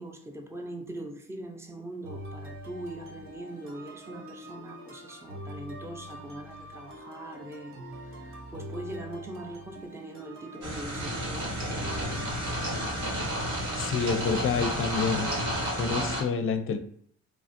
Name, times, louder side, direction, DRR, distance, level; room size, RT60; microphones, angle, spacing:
voice 1, 0.0-12.6, right 1 dB, 10° right, 0.5 m, -42 dB
sound 1, 2.0-15.0, equal, 45° right, 0.8 m, -44 dB
sound 2, 10.6-16.2, equal, 75° right, 1.2 m, -31 dB
voice 2, 13.8-15.3 15.7-16.8, left 5 dB, 45° left, 0.5 m, -28 dB
3.1 x 2.4 x 2.5 m
cardioid pair, 90°, 30 cm